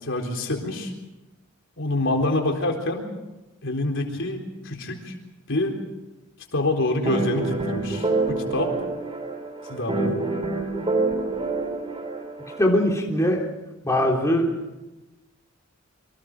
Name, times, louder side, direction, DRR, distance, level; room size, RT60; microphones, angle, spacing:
voice 1, 0.0-0.9 1.8-3.1 3.6-5.1 5.5-5.8 6.5-8.7 9.7-10.2, left 2 dB, 60° left, 3 dB, 4.0 m, -26 dB
sound 1, 7.0-12.7, right 3 dB, 25° right, 2.5 m, -27 dB
voice 2, 12.6-13.5 13.8-14.5, left 1 dB, 15° left, -1 dB, 3.6 m, -21 dB
27.5 x 25.0 x 5.0 m, 1.0 s
head